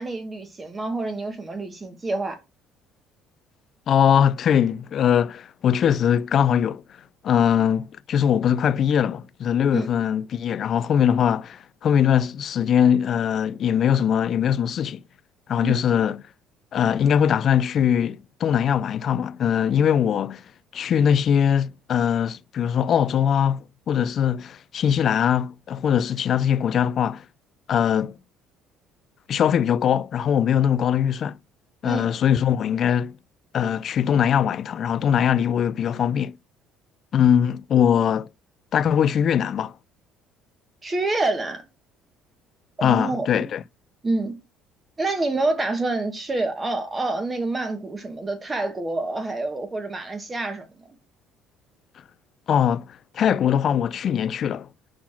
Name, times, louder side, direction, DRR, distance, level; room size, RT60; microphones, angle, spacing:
voice 1, 0.0-2.4 9.7-9.9 15.6-15.8 31.8-32.1 40.8-41.6 42.8-43.5 44.0-44.4 45.0-50.8, right 2 dB, 20° right, 1.8 m, -27 dB
voice 2, 3.9-6.8 7.2-15.0 15.5-16.2 16.7-20.4 20.7-27.2 27.7-28.2 29.3-31.4 31.8-33.2 33.5-36.3 37.1-38.3 38.7-39.7 42.8-43.6 52.5-54.7, left 8 dB, 50° left, 0.3 m, -21 dB
5.9 x 4.1 x 5.9 m
cardioid pair, 115°, 0 cm